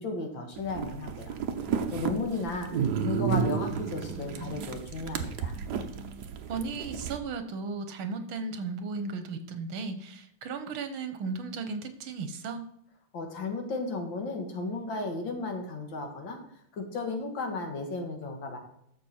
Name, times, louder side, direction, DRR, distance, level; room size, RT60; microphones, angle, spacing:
voice 1, 0.0-1.4 1.7-5.6 13.1-16.4 16.8-18.6, left 3 dB, 65° left, 3 dB, 2.5 m, -34 dB
sound 1, 0.6-7.2, right 6 dB, 60° right, 1.3 m, -32 dB
voice 2, 6.5-12.6, right 4 dB, 75° right, 8 dB, 1.9 m, -35 dB
12.0 x 7.0 x 4.4 m, 0.72 s
omnidirectional pair, 2.3 m